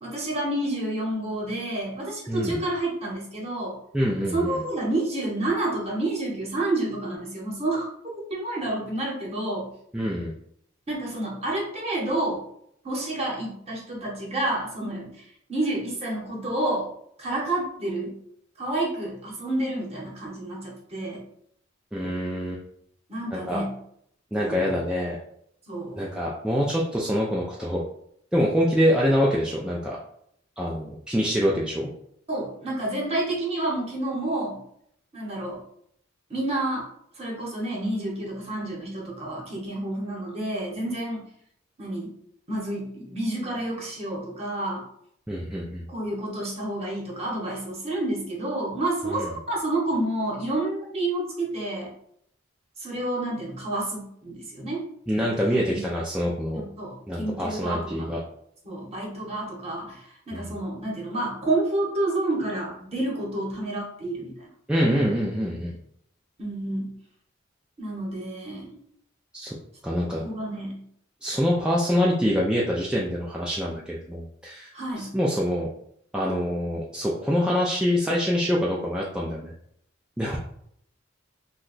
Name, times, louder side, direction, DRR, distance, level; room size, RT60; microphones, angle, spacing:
voice 1, 0.0-3.8 4.3-7.9 8.3-9.7 10.9-12.4 12.8-15.2 15.5-16.9 17.2-18.2 18.6-21.2 23.1-23.7 24.4-24.8 25.7-26.2 32.3-34.6 35.1-35.6 36.3-36.9 37.2-41.2 41.8-42.1 42.5-44.8 45.9-51.9 52.8-54.8 55.4-55.8 56.5-58.1 58.6-64.5 66.4-66.9 67.8-68.8 70.2-70.8 74.7-75.1, right 1 dB, 30° right, -2 dB, 1.0 m, -29 dB
voice 2, 2.3-2.6 3.9-4.6 9.9-10.3 21.9-22.6 23.3-23.6 24.3-25.2 26.0-27.8 28.3-30.0 30.6-31.9 45.3-45.8 49.1-49.3 55.1-56.6 57.1-58.2 60.3-60.5 64.7-65.7 69.3-69.6 69.8-70.2 71.2-74.7 75.0-75.7 76.1-79.5 80.2-80.4, equal, 5° right, -5 dB, 0.3 m, -25 dB
2.8 x 2.2 x 3.9 m, 0.69 s
head